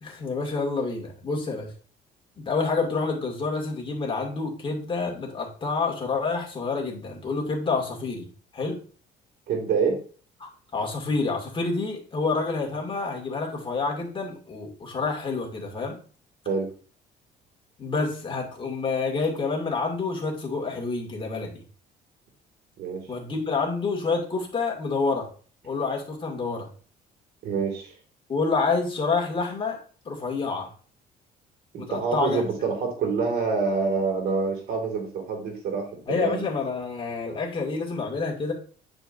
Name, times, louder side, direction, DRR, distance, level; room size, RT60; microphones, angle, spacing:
voice 1, 0.0-1.7 2.4-8.8 10.4-16.0 17.8-21.6 23.1-25.3 25.6-26.7 28.3-29.8 30.0-30.7 31.8-32.4 36.1-38.5, left 4 dB, 30° left, -1 dB, 2.4 m, -28 dB
voice 2, 9.5-10.0 16.5-16.7 22.8-23.0 27.4-27.9 31.7-36.4, right 5 dB, 70° right, 3 dB, 2.4 m, -26 dB
9.2 x 5.0 x 2.7 m, 0.41 s
cardioid pair, 110°, 17 cm